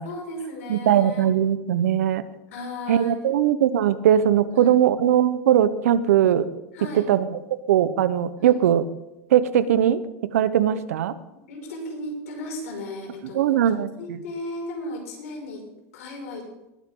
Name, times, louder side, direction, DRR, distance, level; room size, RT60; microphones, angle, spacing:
voice 1, 0.0-1.4 2.5-3.2 4.5-4.8 6.7-7.1 8.4-8.6 11.5-13.6 14.0-15.6 15.9-16.4, left 1 dB, 80° left, 0 dB, 5.8 m, -35 dB
voice 2, 0.7-2.2 2.9-6.5 7.0-7.3 7.7-8.8 9.3-10.0 10.3-11.1 13.3-14.2, right 10 dB, 85° right, 14 dB, 1.0 m, -20 dB
20.0 x 9.2 x 3.8 m, 0.95 s
supercardioid pair, 175°, 8 cm